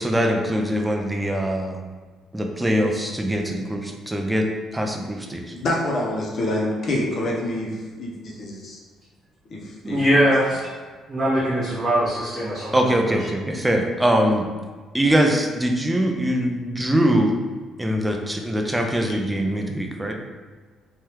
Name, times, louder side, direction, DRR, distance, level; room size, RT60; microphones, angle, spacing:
voice 1, 0.0-1.8 2.3-4.5 4.7-5.4 12.7-14.5 14.9-17.3 17.8-20.2, equal, 10° right, 2 dB, 0.3 m, -22 dB
voice 2, 5.5-7.7 8.0-8.8 9.5-10.0 19.1-19.2, left 1 dB, 45° left, -2 dB, 0.6 m, -26 dB
voice 3, 9.8-10.6 11.1-12.9, equal, 25° right, -12 dB, 1.1 m, -21 dB
3.3 x 2.3 x 2.8 m, 1.5 s
cardioid pair, 145°, 0 cm